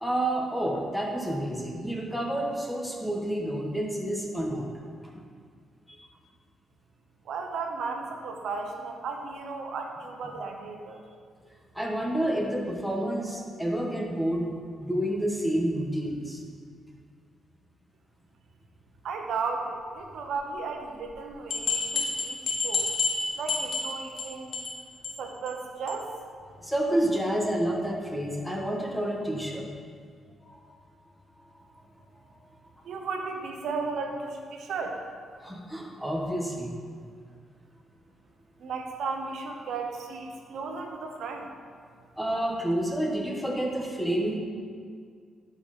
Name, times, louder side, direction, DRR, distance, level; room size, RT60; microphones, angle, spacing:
voice 1, 0.0-4.7 5.1-5.2 5.9-6.0 11.7-14.5 14.8-16.4 26.6-29.7 30.4-30.7 31.4-31.5 35.4-36.8 42.2-44.4, right 1 dB, ahead, -1 dB, 1.3 m, -29 dB
voice 2, 7.2-11.0 19.0-22.9 23.3-24.6 25.2-26.2 32.8-35.0 38.6-41.5, right 4 dB, 80° right, 3 dB, 1.0 m, -35 dB
sound 1, 21.1-21.2 21.5-24.2 24.5-24.8 25.0-25.1 25.5-25.6 25.9-26.0, left 4 dB, 55° left, 1.5 m, -28 dB
11.0 x 5.5 x 4.2 m, 2.1 s
cardioid pair, 100°, 0 cm